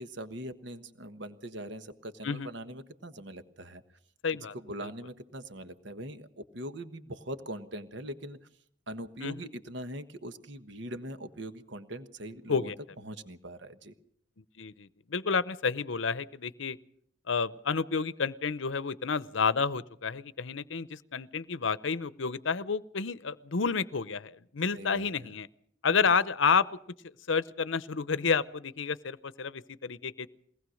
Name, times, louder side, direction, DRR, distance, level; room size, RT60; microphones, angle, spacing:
voice 1, 0.0-3.8 4.5-8.4 8.9-12.7 13.0-13.9 24.7-25.3, right 1 dB, 60° right, 10 dB, 1.3 m, -41 dB
voice 2, 4.2-4.5 9.2-9.5 12.5-12.7 14.6-16.8 17.3-25.5 25.8-26.7 27.3-30.3, left 5 dB, 70° left, 17 dB, 0.7 m, -30 dB
22.0 x 19.0 x 6.4 m, 0.66 s
head